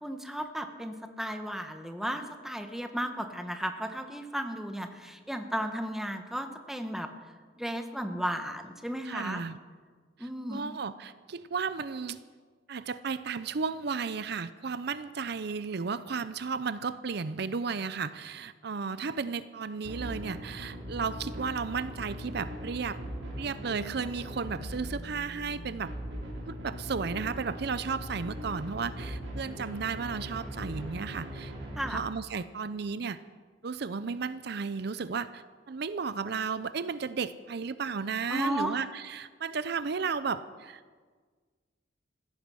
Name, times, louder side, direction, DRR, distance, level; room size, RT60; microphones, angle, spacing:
voice 1, 0.0-7.1 7.6-9.4 10.2-10.7 31.8-32.0 38.3-38.8, equal, ahead, 6 dB, 1.1 m, -34 dB
voice 2, 9.1-9.6 10.2-12.2 12.7-23.0 23.4-25.9 26.5-31.5 31.9-33.2 33.6-41.0, right 5 dB, 60° right, 14 dB, 0.5 m, -34 dB
sound 1, 19.8-31.8, equal, 75° right, 5.1 m, -40 dB
15.5 x 14.5 x 6.3 m, 1.5 s
head